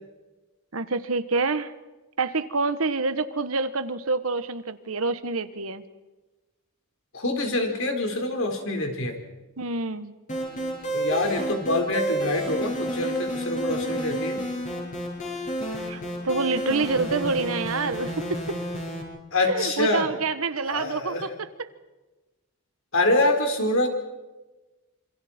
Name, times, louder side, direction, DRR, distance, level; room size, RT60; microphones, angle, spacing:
voice 1, 0.7-1.7 2.2-5.8 9.6-10.1 15.9-18.4 19.5-21.7, right 3 dB, 80° right, 11 dB, 1.4 m, -27 dB
voice 2, 7.1-9.1 10.9-14.4 19.3-20.1 20.7-21.2 22.9-23.9, left 2 dB, 65° left, 3 dB, 4.4 m, -25 dB
sound 1, 10.3-19.0, right 1 dB, 35° left, 7.8 m, -30 dB
27.5 x 26.5 x 4.5 m, 1.1 s
head